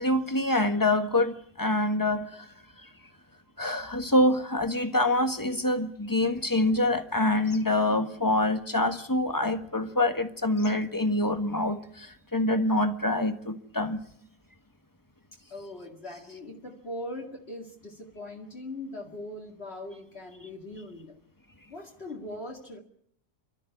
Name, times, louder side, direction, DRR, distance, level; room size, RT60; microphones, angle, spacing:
voice 1, 0.0-2.4 3.6-14.0, left 1 dB, 15° left, 1.4 m, -26 dB
voice 2, 15.5-21.2 21.7-22.8, left 1 dB, 45° left, 2.5 m, -40 dB
29.5 x 12.5 x 9.9 m
omnidirectional pair, 1.5 m